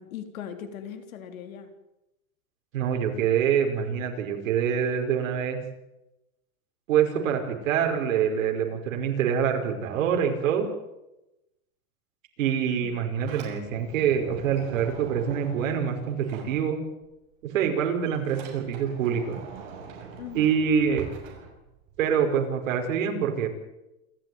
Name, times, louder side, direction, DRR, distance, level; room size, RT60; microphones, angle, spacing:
voice 1, 0.0-1.7 12.8-13.1 20.2-20.6, left 8 dB, 75° left, 7 dB, 3.8 m, -40 dB
voice 2, 2.7-5.6 6.9-10.7 12.4-16.8 17.4-19.4 20.3-21.1 22.0-23.5, right 8 dB, 70° right, 3 dB, 5.5 m, -25 dB
Sliding door, 12.9-17.1 17.4-22.2, right 6 dB, 40° right, 6.9 m, -44 dB
28.0 x 13.0 x 9.4 m, 0.94 s
supercardioid pair, 180°, 42 cm